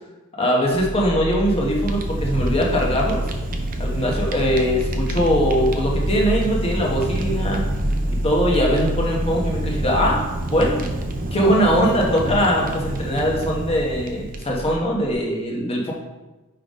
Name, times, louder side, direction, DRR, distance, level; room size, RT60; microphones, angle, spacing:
voice 1, 0.4-3.2 3.8-7.6 8.2-10.9 11.3-15.9, equal, 25° left, -2 dB, 1.1 m, -21 dB
sound 1, 0.7-15.1, equal, 70° left, 0.6 m, -28 dB
Fire, 1.2-14.8, right 1 dB, 40° right, 0.6 m, -29 dB
5.7 x 3.9 x 5.0 m, 1.1 s
head